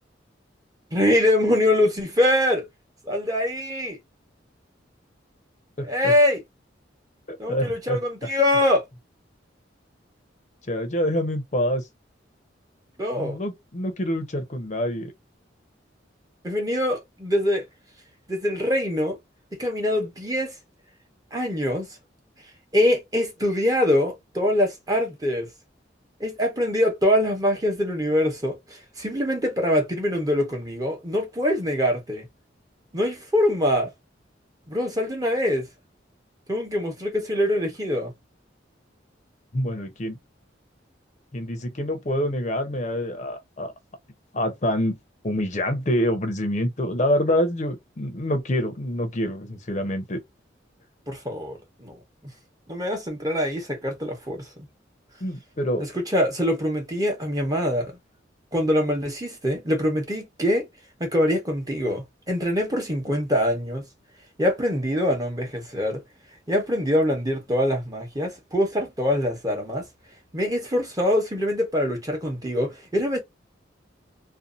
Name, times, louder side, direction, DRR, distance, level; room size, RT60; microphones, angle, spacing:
voice 1, 0.9-2.7 3.1-4.0 5.8-6.4 7.4-8.8 13.0-13.4 16.4-17.6 18.3-19.2 19.6-20.5 21.3-22.0 22.7-25.5 26.2-32.3 32.9-33.9 34.7-35.7 36.5-38.1 51.1-52.0 52.2-52.3 52.7-54.5 55.8-58.0 58.5-60.7 61.0-63.9 64.4-66.0 66.5-69.9 70.3-73.2, left 1 dB, 20° right, 0.9 m, -24 dB
voice 2, 5.8-6.1 7.3-8.3 10.7-11.8 13.1-15.1 39.5-40.2 41.3-43.7 44.3-45.0 45.2-50.2 55.2-55.9, equal, 40° left, 0.6 m, -26 dB
2.7 x 2.3 x 2.3 m
head